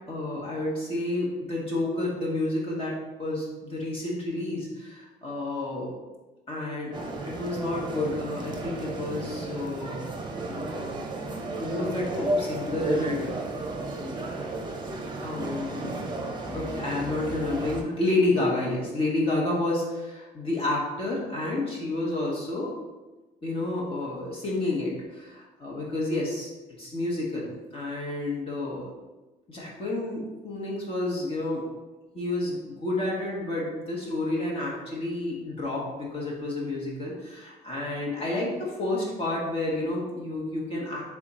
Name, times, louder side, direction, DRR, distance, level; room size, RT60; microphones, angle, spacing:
voice 1, 0.1-2.9 3.2-5.9 6.5-10.1 10.5-11.0 11.6-13.2 15.2-16.0 16.5-22.8 23.4-26.5 26.8-28.9 29.5-31.7 32.1-41.0, left 2 dB, 35° left, -4 dB, 1.2 m, -30 dB
sound 1, 6.9-17.8, right 2 dB, 25° right, 0.7 m, -33 dB
3.6 x 3.5 x 4.1 m, 1.1 s
cardioid pair, 110°, 17 cm